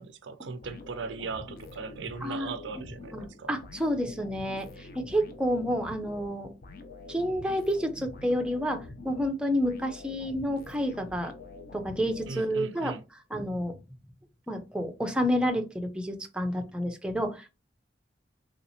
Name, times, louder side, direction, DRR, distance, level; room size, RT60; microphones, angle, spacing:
voice 1, 0.0-3.5 12.3-13.0, right 4 dB, 85° right, 0.4 m, -39 dB
sound 1, 0.6-12.8, left 2 dB, 55° left, 0.6 m, -46 dB
voice 2, 2.2-2.5 3.1-6.5 7.1-11.3 11.7-13.0 13.3-13.8 14.5-17.6, equal, 5° right, 0.5 m, -29 dB
3.3 x 2.9 x 2.7 m
head